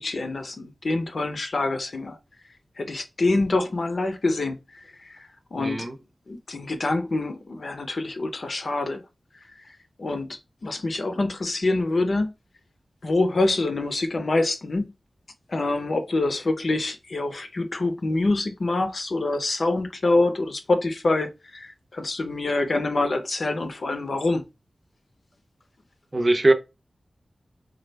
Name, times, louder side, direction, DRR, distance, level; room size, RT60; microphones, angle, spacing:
voice 1, 0.0-2.2 2.8-5.9 6.3-9.0 10.0-12.3 13.0-14.9 15.5-24.4, left 2 dB, 60° left, 0.7 m, -26 dB
voice 2, 5.6-6.0 26.1-26.5, right 2 dB, 35° right, 0.6 m, -20 dB
4.1 x 2.4 x 3.3 m
wide cardioid pair, 75°, 0 cm